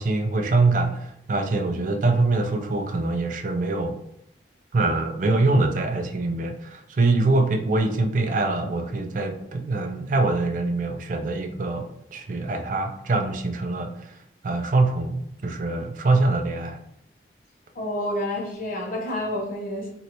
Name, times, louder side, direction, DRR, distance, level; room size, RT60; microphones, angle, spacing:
voice 1, 0.0-4.0 4.7-14.2 14.4-16.8, right 2 dB, 45° right, 0.3 m, -24 dB
voice 2, 17.7-19.9, left 1 dB, 45° left, 0.8 m, -29 dB
3.1 x 2.6 x 2.8 m
head